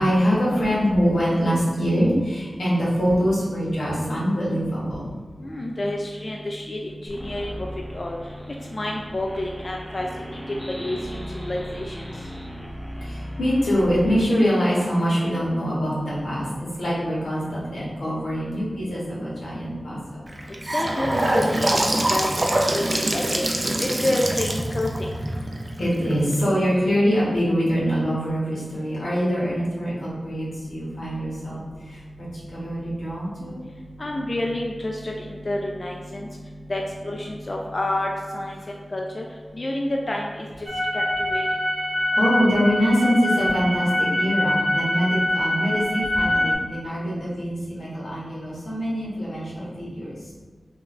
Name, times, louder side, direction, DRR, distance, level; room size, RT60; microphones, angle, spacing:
voice 1, 0.0-5.2 13.0-20.0 25.8-31.6 31.9-33.6 42.1-50.2, equal, 90° left, -7 dB, 1.1 m, -24 dB
voice 2, 5.4-7.5 7.9-8.2 8.7-10.1 10.8-11.0 11.3-11.6 11.9-12.0 20.7-22.2 22.6-22.8 23.1-23.4 24.0-24.9 34.0-36.3 36.7-38.1 38.3-38.5 38.9-39.2 39.6-40.5 40.9-41.0 41.3-41.4, left 1 dB, 40° left, 0 dB, 0.3 m, -28 dB
sound 1, 7.1-14.3, equal, 10° left, 0.7 m, -37 dB
Gurgling / Sink (filling or washing) / Bathtub (filling or washing), 20.3-26.3, right 1 dB, 40° right, 0.4 m, -24 dB
sound 2, 40.7-46.6, left 1 dB, 60° right, 1.2 m, -24 dB
3.3 x 2.4 x 3.1 m, 1.5 s
wide cardioid pair, 60°, 0 cm